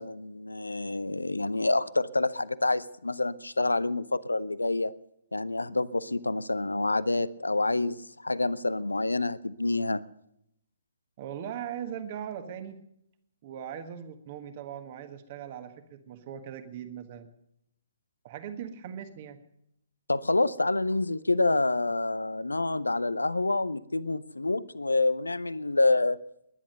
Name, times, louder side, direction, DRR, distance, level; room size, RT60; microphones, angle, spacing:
voice 1, 0.0-4.9 5.3-10.0 20.1-26.2, left 2 dB, 75° left, 19 dB, 0.7 m, -27 dB
voice 2, 11.2-12.8 13.4-17.3 18.2-19.4, right 9 dB, 35° right, 9 dB, 1.5 m, -39 dB
20.5 x 10.5 x 6.6 m, 0.76 s
figure-of-eight pair, 130°, 0 cm